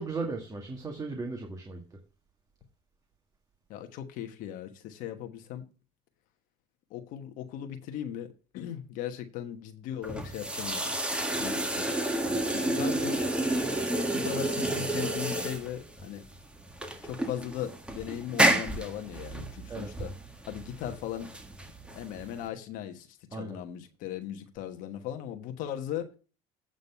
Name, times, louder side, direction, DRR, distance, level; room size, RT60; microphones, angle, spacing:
voice 1, 0.0-1.8 19.7-19.9 23.3-23.6, right 3 dB, 25° right, 1.8 m, -36 dB
voice 2, 3.7-5.6 6.9-11.9 12.2-13.2 14.1-16.2 17.0-20.1 20.4-21.3 21.9-26.1, left 10 dB, 70° left, 1.2 m, -38 dB
sound 1, 10.0-22.5, right 1 dB, 5° right, 1.6 m, -30 dB
8.5 x 4.0 x 6.8 m
supercardioid pair, 85°, 15 cm